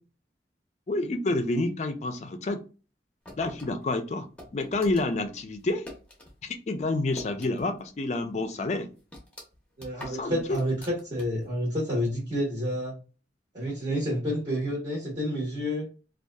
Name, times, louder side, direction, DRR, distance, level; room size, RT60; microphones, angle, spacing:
voice 1, 0.9-2.6 3.4-4.3 4.5-5.8 6.4-8.9 10.0-10.6, left 2 dB, 40° left, 7 dB, 0.4 m, -29 dB
sound 1, 3.2-6.3 6.6-7.9 8.2-8.3 8.7-11.5, left 1 dB, 5° left, 0.7 m, -46 dB
voice 2, 9.8-13.0 13.5-15.9, equal, 35° right, -5 dB, 0.9 m, -29 dB
2.7 x 2.3 x 2.2 m, 0.33 s
head